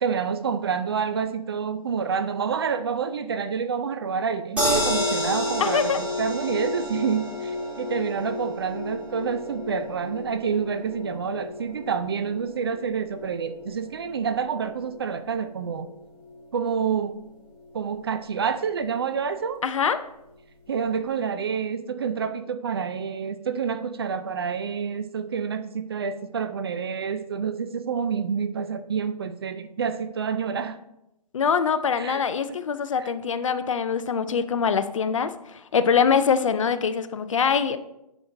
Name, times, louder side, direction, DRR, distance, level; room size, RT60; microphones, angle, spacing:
voice 1, 0.0-15.9 16.5-17.1 17.7-19.6 20.7-30.8 32.0-32.2 32.5-32.6 33.0-33.1, right 6 dB, 35° right, 11 dB, 0.4 m, -28 dB
sound 1, 4.6-16.8 17.2-17.3 17.6-17.7, left 1 dB, 5° right, 2.1 m, -31 dB
voice 2, 5.6-6.0 19.6-20.0 31.3-37.8, left 6 dB, 50° left, 12 dB, 0.5 m, -23 dB
10.5 x 5.9 x 2.6 m, 0.87 s
figure-of-eight pair, 145°, 21 cm